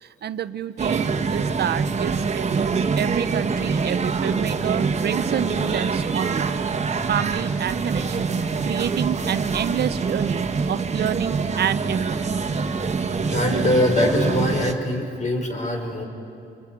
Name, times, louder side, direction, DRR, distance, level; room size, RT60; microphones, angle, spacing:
voice 1, 0.0-6.6 7.1-8.3 8.6-12.3, right 9 dB, 55° right, 14 dB, 0.7 m, -29 dB
sound 1, 0.8-14.7, right 5 dB, 35° right, 1.7 m, -25 dB
voice 2, 13.2-16.0, left 1 dB, 40° left, 4 dB, 5.0 m, -23 dB
26.0 x 22.5 x 9.3 m, 2.6 s
cardioid pair, 90°, 20 cm